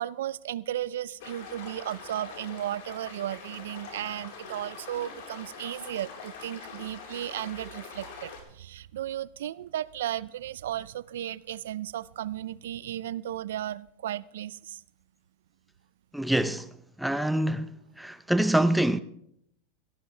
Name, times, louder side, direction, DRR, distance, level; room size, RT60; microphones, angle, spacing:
voice 1, 0.0-14.8, right 12 dB, 85° right, 0.5 m, -35 dB
sound 1, 1.2-8.4, left 5 dB, 70° left, 4.2 m, -44 dB
voice 2, 16.1-16.7 17.0-17.7 18.0-19.0, right 1 dB, ahead, 0.6 m, -25 dB
17.5 x 14.0 x 3.3 m
supercardioid pair, 120°, 0 cm